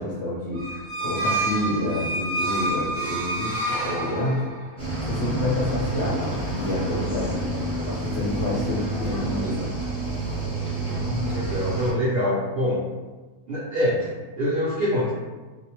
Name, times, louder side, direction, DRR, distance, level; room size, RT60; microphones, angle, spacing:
voice 1, 0.0-4.5 5.0-6.2 6.5-7.6 7.8-9.7, left 2 dB, 60° left, -6 dB, 0.7 m, -28 dB
sound 1, 0.5-4.7, right 2 dB, 25° right, 1.0 m, -28 dB
Cricket / Waves surf, 4.8-11.9, right 2 dB, 5° left, 0.5 m, -29 dB
voice 2, 10.8-12.8 13.5-15.1, left 1 dB, 70° right, -6 dB, 0.5 m, -25 dB
2.5 x 2.1 x 2.8 m, 1.3 s
omnidirectional pair, 1.6 m